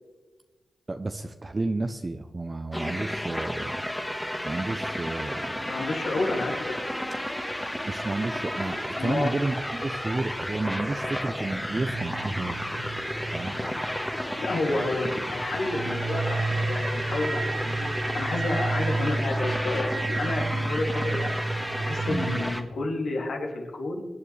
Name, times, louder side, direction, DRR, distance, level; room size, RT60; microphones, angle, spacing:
voice 1, 0.9-3.9 4.4-5.8 7.8-12.9 13.3-13.6 22.1-22.3, right 2 dB, 35° right, 7 dB, 0.6 m, -31 dB
sound 1, 2.7-22.6, left 1 dB, 10° left, 1.4 m, -32 dB
voice 2, 5.6-7.0 8.9-9.4 14.4-21.4 21.8-24.1, left 2 dB, 80° left, 0 dB, 2.6 m, -30 dB
sound 2, 11.7-22.5, right 3 dB, 65° right, 1.7 m, -31 dB
24.5 x 8.7 x 3.3 m, 1.3 s
cardioid pair, 65°, 0 cm